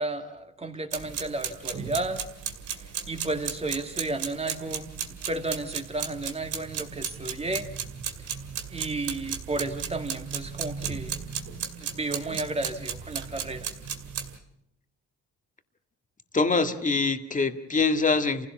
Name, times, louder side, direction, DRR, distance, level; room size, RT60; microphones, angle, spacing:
voice 1, 0.0-2.2 2.7-7.7 8.7-11.1 11.8-13.7, right 2 dB, 20° right, 6 dB, 2.4 m, -33 dB
sound 1, 0.9-14.4, right 7 dB, 80° right, 2.4 m, -35 dB
voice 2, 16.3-18.5, left 4 dB, 25° left, 7 dB, 1.9 m, -24 dB
28.5 x 16.0 x 7.2 m, 0.76 s
cardioid pair, 90°, 30 cm